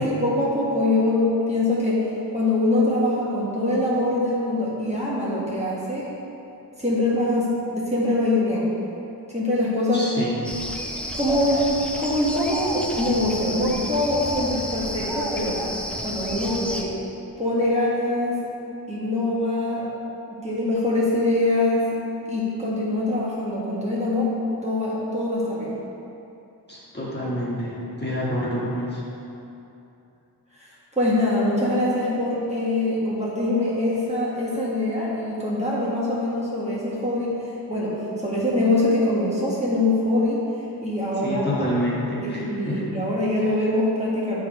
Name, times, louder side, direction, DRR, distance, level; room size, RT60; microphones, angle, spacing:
voice 1, 0.0-2.0 2.3-6.1 6.8-8.7 9.3-10.1 11.0-15.6 16.0-16.9 17.4-18.4 18.9-19.9 20.3-21.9 22.3-24.3 24.6-25.8 30.5-30.7 31.0-37.3 37.7-37.9 38.2-40.4 40.8-41.6 42.2-44.4, left 1 dB, 15° right, -7 dB, 1.5 m, -23 dB
voice 2, 9.9-10.4 26.7-29.0 41.2-42.9, equal, 25° left, -7 dB, 1.5 m, -27 dB
sound 1, 10.4-16.8, equal, 5° left, 0.6 m, -31 dB
6.9 x 3.8 x 5.1 m, 2.8 s
wide cardioid pair, 65°, 42 cm